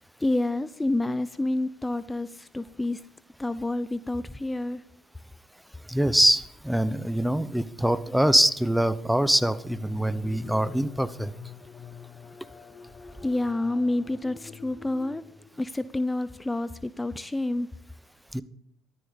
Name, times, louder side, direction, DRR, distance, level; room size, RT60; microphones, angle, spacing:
voice 1, 0.2-3.0 3.4-4.8 13.2-15.2 15.6-17.7, left 2 dB, 15° left, 16 dB, 0.6 m, -28 dB
voice 2, 5.9-11.3 18.3-18.4, right 1 dB, 5° right, 14 dB, 1.0 m, -24 dB
sound 1, 9.0-15.9, left 7 dB, 40° left, 1.1 m, -46 dB
14.0 x 12.5 x 5.4 m, 0.73 s
hypercardioid pair, 65°, 0 cm